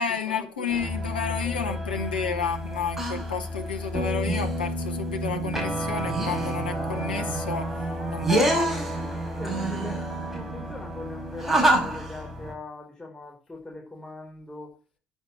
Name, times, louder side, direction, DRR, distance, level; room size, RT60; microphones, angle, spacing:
voice 1, 0.0-8.8, left 5 dB, 80° left, 1.4 m, -31 dB
sound 1, 0.7-12.5, right 1 dB, 5° right, 5.5 m, -28 dB
voice 2, 1.4-1.9 9.4-14.7, left 2 dB, 15° left, 5.0 m, -40 dB
10.0 x 7.0 x 7.8 m
figure-of-eight pair, 55°, 5 cm